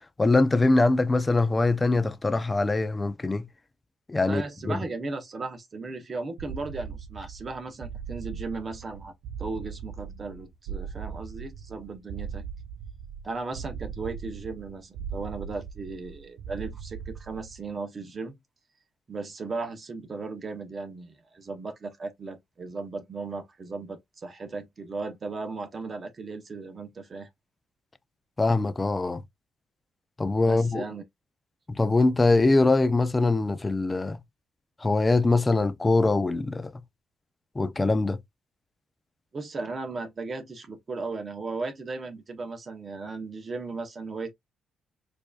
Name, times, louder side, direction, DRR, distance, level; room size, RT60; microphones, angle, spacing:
voice 1, 0.2-3.5 4.1-4.4 4.7-4.8 28.4-29.2 30.2-30.8 31.7-34.2 34.8-36.7 37.6-38.2, left 3 dB, 20° left, 0.4 m, -23 dB
voice 2, 4.3-9.1 9.4-12.5 13.2-18.4 19.1-27.3 30.4-31.0 39.3-44.3, right 3 dB, 40° right, 0.8 m, -36 dB
sound 1, 6.4-17.7, right 7 dB, 85° right, 0.4 m, -39 dB
4.5 x 2.6 x 2.3 m
cardioid pair, 90°, 0 cm